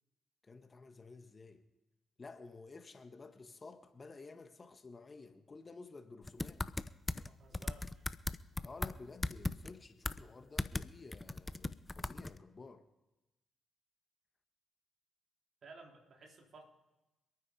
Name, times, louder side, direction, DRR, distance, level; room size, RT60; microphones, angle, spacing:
voice 1, 0.4-1.6 2.2-6.7 8.6-12.9, left 3 dB, 40° left, 1.6 m, -53 dB
sound 1, 6.3-7.3 7.5-8.9 9.2-9.7 10.1-10.2 10.6-10.9 11.1-12.4, left 2 dB, 20° left, 0.8 m, -37 dB
voice 2, 7.3-8.1 15.6-16.6, right 3 dB, 60° right, 3.6 m, -56 dB
27.5 x 9.4 x 4.9 m
hypercardioid pair, 45°, 0 cm